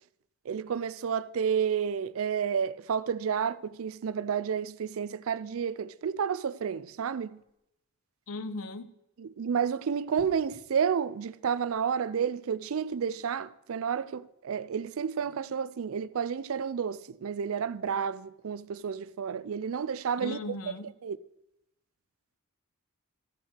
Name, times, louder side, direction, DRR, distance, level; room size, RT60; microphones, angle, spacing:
voice 1, 0.5-7.4 9.2-20.6 21.0-21.2, right 7 dB, 75° right, 0.4 m, -31 dB
sound 1, 7.6-7.7 10.1-10.7 12.7-12.9, equal, 45° right, 1.9 m, -54 dB
voice 2, 8.3-8.9 20.2-20.9, left 2 dB, 80° left, 0.7 m, -37 dB
13.5 x 5.9 x 6.5 m
head